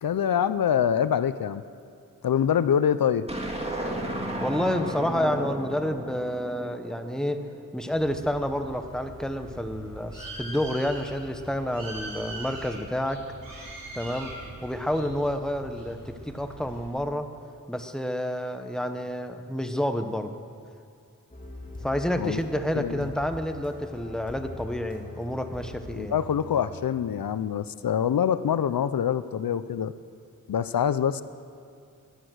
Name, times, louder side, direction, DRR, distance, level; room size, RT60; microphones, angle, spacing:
voice 1, 0.0-1.6 2.2-3.2 22.2-23.1 25.9-29.9 30.5-31.2, left 8 dB, 85° left, 14 dB, 0.6 m, -25 dB
sound 1, 3.3-7.7, right 1 dB, 20° right, 2.2 m, -34 dB
voice 2, 4.4-7.4 7.7-13.2 13.9-14.3 14.6-17.3 17.7-20.3 21.8-26.1, equal, ahead, 7 dB, 1.0 m, -29 dB
Bird, 7.9-16.9, right 1 dB, 80° right, 4.7 m, -42 dB
sound 2, 21.3-27.4, left 1 dB, 25° left, 2.8 m, -42 dB
18.5 x 12.0 x 6.4 m, 2.4 s
wide cardioid pair, 80°, 34 cm